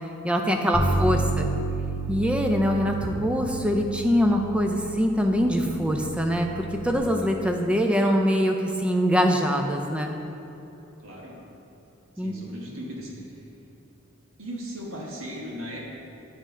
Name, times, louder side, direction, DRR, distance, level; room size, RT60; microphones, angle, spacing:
voice 1, 0.2-1.5 2.1-10.1 12.2-12.3, equal, 5° right, 3 dB, 0.4 m, -23 dB
Bass guitar, 0.7-7.0, right 3 dB, 45° left, 1.3 m, -31 dB
voice 2, 0.8-1.4 11.0-11.3 12.2-13.1 14.4-15.9, equal, 80° right, -3 dB, 1.4 m, -37 dB
8.7 x 5.3 x 3.8 m, 2.9 s
head